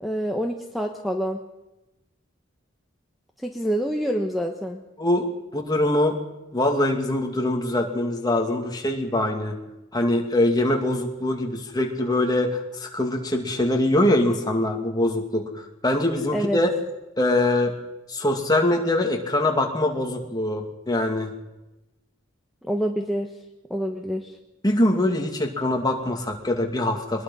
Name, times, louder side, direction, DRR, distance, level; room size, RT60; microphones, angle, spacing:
voice 1, 0.0-1.4 3.4-4.8 16.3-16.6 22.7-23.3 23.7-24.3, equal, ahead, 3 dB, 1.2 m, -26 dB
voice 2, 5.5-6.1 6.5-9.6 9.9-16.7 17.2-17.7 18.1-21.3 24.6-27.2, left 1 dB, 20° left, 2 dB, 2.4 m, -23 dB
23.0 x 20.5 x 5.6 m, 1.0 s
head